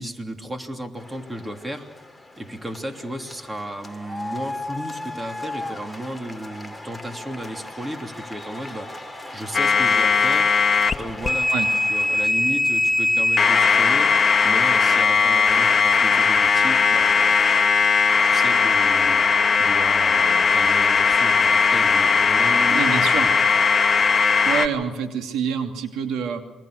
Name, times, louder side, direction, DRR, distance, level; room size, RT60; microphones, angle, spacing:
voice 1, 0.0-1.9 2.4-8.9 9.3-10.5 11.0-11.5 11.9-14.1 14.4-17.4 18.2-19.3 19.5-23.3, right 1 dB, 15° right, 5 dB, 3.1 m, -34 dB
sound 1, 1.0-12.3, left 2 dB, ahead, 2.7 m, -37 dB
sound 2, 9.5-10.9 11.2-24.7, left 5 dB, 35° left, 1.6 m, -18 dB
voice 2, 22.7-23.3 24.2-26.4, right 7 dB, 85° right, 5 dB, 2.7 m, -27 dB
28.5 x 23.5 x 6.6 m, 1.0 s
cardioid pair, 90°, 0 cm